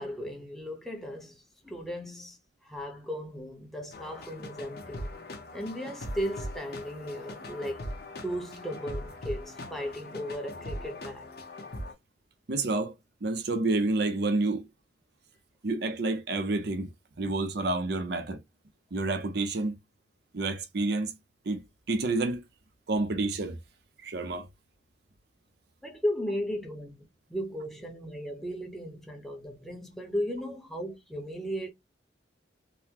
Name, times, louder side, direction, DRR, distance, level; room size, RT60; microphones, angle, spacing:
voice 1, 0.0-5.1 5.5-7.8 8.2-11.3 25.8-27.0 27.3-31.7, equal, ahead, 0.8 m, -36 dB
sound 1, 3.9-11.9, left 1 dB, 60° left, 0.9 m, -40 dB
voice 2, 12.5-12.9 13.2-14.7 15.6-16.9 17.2-18.4 18.9-19.8 20.3-21.1 21.5-21.6 21.9-22.4 22.9-23.6 24.0-24.5, right 2 dB, 60° right, 0.6 m, -29 dB
3.8 x 2.1 x 2.8 m
head